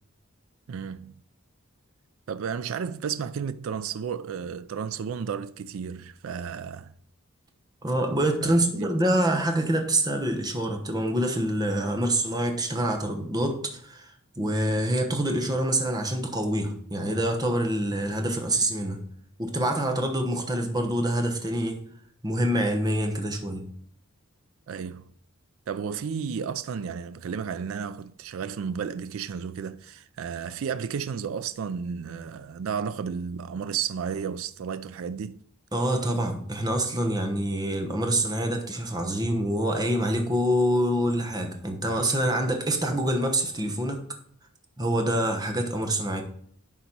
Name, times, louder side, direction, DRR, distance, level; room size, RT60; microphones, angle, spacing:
voice 1, 0.7-1.1 2.3-6.9 8.4-8.9 24.7-25.1 25.7-35.4, right 7 dB, 70° right, 0.4 m, -33 dB
voice 2, 7.8-19.0 19.4-21.8 22.2-23.7 35.7-44.0 44.8-46.2, right 1 dB, 20° right, 1.1 m, -26 dB
11.0 x 4.1 x 4.5 m
head